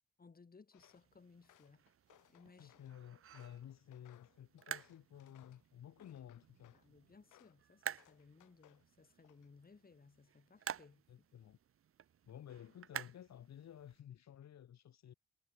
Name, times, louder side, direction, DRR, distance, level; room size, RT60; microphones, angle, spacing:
voice 1, 0.2-1.9 2.3-2.8 6.7-11.0, left 4 dB, 30° left, 4.9 m, -62 dB
Walk footsteps, 0.7-1.1 1.4-2.9 3.3-5.7 6.0-6.9 7.3-7.6 8.0-8.8 9.2-9.6, left 14 dB, 85° left, 6.3 m, -68 dB
sound 1, 0.8-14.0, right 9 dB, 45° right, 0.9 m, -51 dB
voice 2, 2.6-6.8 11.1-11.6 12.2-15.1, left 10 dB, 60° left, 2.7 m, -54 dB
cardioid pair, 90°, 30 cm